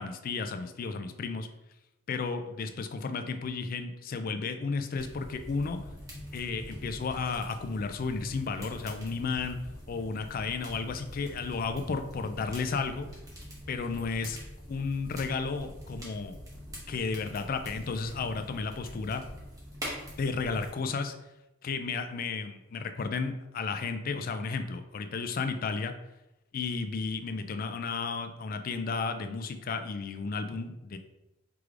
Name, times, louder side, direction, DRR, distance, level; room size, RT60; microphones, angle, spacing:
voice 1, 0.0-1.5 2.1-5.8 6.3-9.6 9.9-13.1 13.7-14.4 14.7-16.4 16.9-19.2 20.2-21.1 21.6-25.9 26.5-31.0, left 4 dB, 40° left, 8 dB, 0.3 m, -33 dB
sound 1, 4.9-20.7, equal, 15° right, 0.9 m, -44 dB
4.7 x 3.2 x 2.5 m, 0.96 s
head